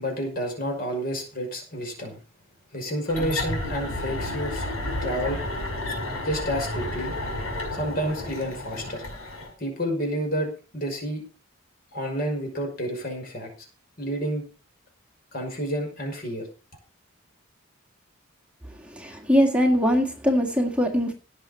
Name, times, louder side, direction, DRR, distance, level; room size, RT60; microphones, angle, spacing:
voice 1, 0.0-2.2 2.7-4.6 5.0-5.4 6.2-7.1 7.7-9.0 9.6-11.2 11.9-13.5 14.0-14.4 15.3-16.5, equal, 45° left, 2 dB, 5.7 m, -29 dB
sound 1, 3.1-9.5, left 1 dB, 75° left, 5.8 m, -31 dB
voice 2, 18.9-21.1, equal, 5° right, 2 dB, 1.8 m, -22 dB
17.5 x 6.7 x 5.7 m, 0.34 s
head